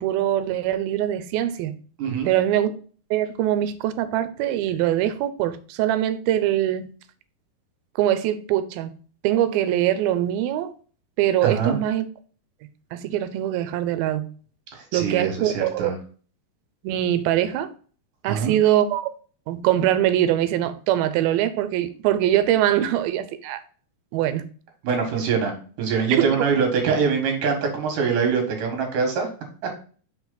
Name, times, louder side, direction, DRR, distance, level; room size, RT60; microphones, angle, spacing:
voice 1, 0.0-1.8 2.3-2.7 3.1-6.9 8.0-8.9 9.2-10.7 11.2-12.1 12.9-14.3 14.9-15.9 16.8-17.7 18.2-19.1 19.5-23.6 24.1-24.5 26.2-26.5, right 12 dB, 85° right, 2.5 m, -23 dB
voice 2, 2.0-2.3 11.4-11.8 14.7-15.9 18.3-18.5 24.8-29.3 29.6-29.7, right 5 dB, 65° right, 3.1 m, -24 dB
6.0 x 4.5 x 3.9 m
omnidirectional pair, 4.2 m